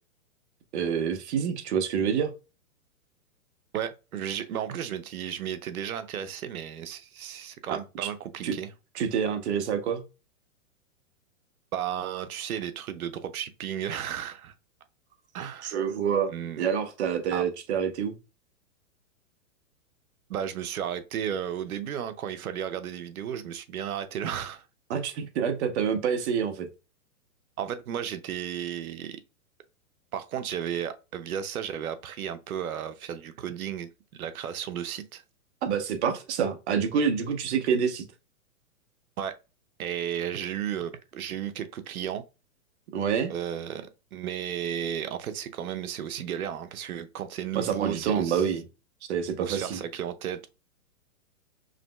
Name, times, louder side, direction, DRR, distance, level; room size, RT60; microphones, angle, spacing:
voice 1, 0.7-2.3 7.7-8.1 8.4-8.5 8.9-10.0 15.6-16.3 16.6-18.1 24.9-26.7 35.6-38.0 42.9-43.3 47.5-48.6 49.1-49.8, right 7 dB, 55° right, 0.9 m, -27 dB
voice 2, 3.7-8.7 11.7-14.5 15.3-15.8 16.3-16.7 17.3-17.4 20.3-24.6 27.6-29.2 30.1-35.2 39.2-39.4 39.8-42.2 43.3-48.4 49.4-50.5, right 9 dB, 90° right, 0.7 m, -34 dB
5.0 x 3.1 x 2.2 m
hypercardioid pair, 145°, 42 cm